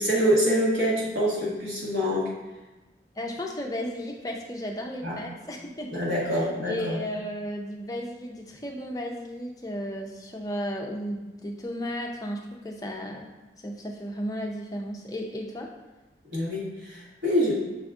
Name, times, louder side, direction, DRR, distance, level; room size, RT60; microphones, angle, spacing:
voice 1, 0.0-2.3 5.0-5.2 5.9-7.0 16.3-17.5, equal, 75° right, -6 dB, 1.5 m, -25 dB
voice 2, 3.2-13.3 13.6-15.7, equal, 20° left, 1 dB, 0.4 m, -34 dB
6.1 x 2.3 x 3.6 m, 1.1 s
head